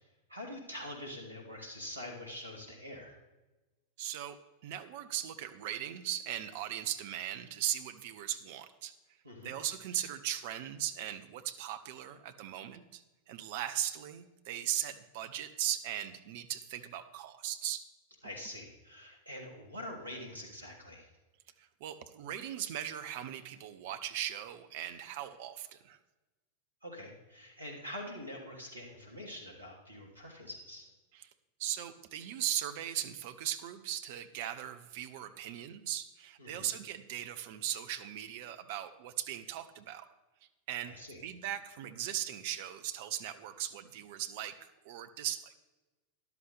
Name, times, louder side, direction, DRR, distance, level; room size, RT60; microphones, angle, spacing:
voice 1, 0.3-3.2 9.2-9.5 18.2-21.1 26.8-30.9 36.4-36.7 40.9-41.2, left 1 dB, 80° right, 1 dB, 2.6 m, -45 dB
voice 2, 4.0-4.4 4.6-8.9 9.4-17.9 21.6-26.0 31.1-31.3 31.6-40.1 40.4-41.0 41.2-45.5, right 11 dB, 50° right, 10 dB, 0.8 m, -38 dB
13.5 x 11.5 x 3.4 m, 1.1 s
figure-of-eight pair, 90°, 0 cm